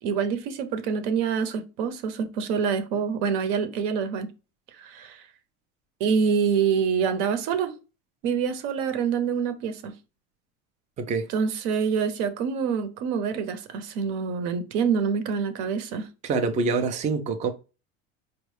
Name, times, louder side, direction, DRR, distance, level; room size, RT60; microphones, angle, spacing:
voice 1, 0.0-4.3 4.8-5.3 6.0-7.7 8.2-9.9 11.3-16.1, right 6 dB, 75° right, 0.8 m, -26 dB
voice 2, 11.0-11.3 16.2-17.5, right 4 dB, 25° right, 0.4 m, -25 dB
4.5 x 2.3 x 3.2 m
cardioid pair, 140°, 32 cm